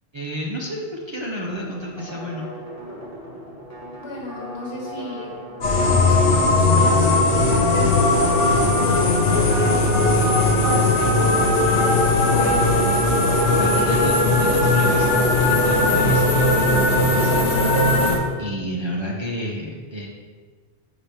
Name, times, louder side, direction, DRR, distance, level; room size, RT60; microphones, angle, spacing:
voice 1, 0.1-2.5 13.6-17.6 18.4-20.1, equal, 30° right, -4 dB, 0.6 m, -30 dB
sound 1, 1.5-16.3, equal, 15° right, 1.3 m, -37 dB
voice 2, 4.0-5.3 5.6-9.1 9.5-11.1 11.8-12.8 13.7-14.3, left 2 dB, 65° left, -3 dB, 1.5 m, -34 dB
sound 2, 5.6-18.2, left 2 dB, 80° left, 1.3 m, -18 dB
4.7 x 4.4 x 4.9 m, 1.5 s
omnidirectional pair, 1.1 m